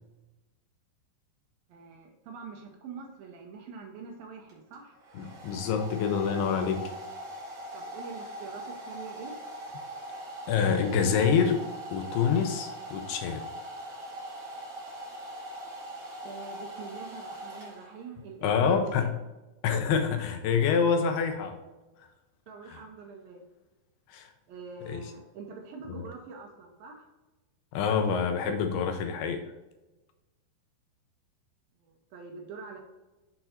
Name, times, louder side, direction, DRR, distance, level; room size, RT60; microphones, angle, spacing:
voice 1, 1.7-5.0 7.7-9.3 12.0-12.1 16.2-19.1 22.5-23.4 24.5-27.1 31.8-32.8, right 4 dB, 75° right, 1 dB, 2.2 m, -45 dB
Domestic sounds home sounds, 4.5-18.2, right 1 dB, 35° right, 1.4 m, -41 dB
voice 2, 5.2-6.9 10.5-11.6 11.9-13.4 18.4-19.1 19.6-21.6 22.7-22.8 24.1-24.3 24.9-25.1 25.9-26.0 27.7-29.4, left 6 dB, 85° left, 6 dB, 2.4 m, -26 dB
6.8 x 4.4 x 4.3 m, 1.1 s
omnidirectional pair, 4.8 m